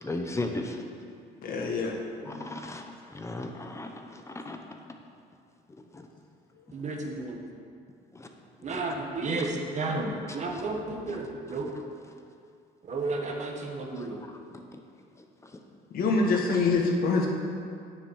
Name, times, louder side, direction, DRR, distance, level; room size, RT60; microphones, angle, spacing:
voice 1, 0.0-0.8 2.2-4.6 5.9-6.1 8.1-8.3 8.7-8.8 14.0-14.1 14.5-14.8, left 2 dB, 15° left, 4 dB, 0.8 m, -36 dB
voice 2, 1.4-1.9 15.9-17.3, left 3 dB, 60° left, 0 dB, 1.6 m, -25 dB
voice 3, 6.7-7.4 8.6-11.7 12.8-14.2, right 3 dB, 45° right, 2 dB, 1.4 m, -32 dB
9.0 x 7.3 x 4.8 m, 2.3 s
cardioid pair, 110°, 17 cm